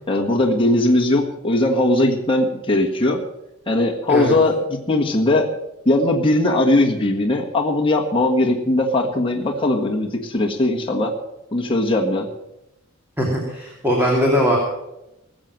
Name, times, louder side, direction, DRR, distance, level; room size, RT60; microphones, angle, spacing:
voice 1, 0.1-3.2 3.7-5.5 5.8-11.1 11.5-12.3, left 2 dB, 25° left, -1 dB, 1.6 m, -19 dB
voice 2, 13.2-14.6, equal, 10° right, -2 dB, 2.8 m, -20 dB
19.5 x 7.6 x 7.6 m, 0.89 s
head